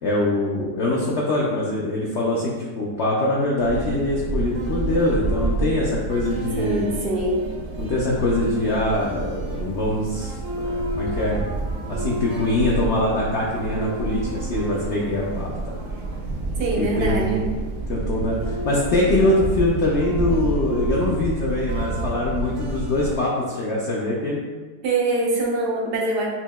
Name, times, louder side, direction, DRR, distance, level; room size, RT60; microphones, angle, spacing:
voice 1, 0.0-6.9 7.8-11.5 11.9-15.7 16.8-17.4 17.9-24.4, left 2 dB, 70° left, -4 dB, 0.6 m, -23 dB
sound 1, 3.6-23.2, right 2 dB, 60° right, 0.9 m, -28 dB
voice 2, 6.6-7.5 16.6-17.4 24.8-26.3, right 2 dB, 85° right, -2 dB, 1.4 m, -23 dB
5.7 x 2.7 x 2.2 m, 1.3 s
omnidirectional pair, 1.7 m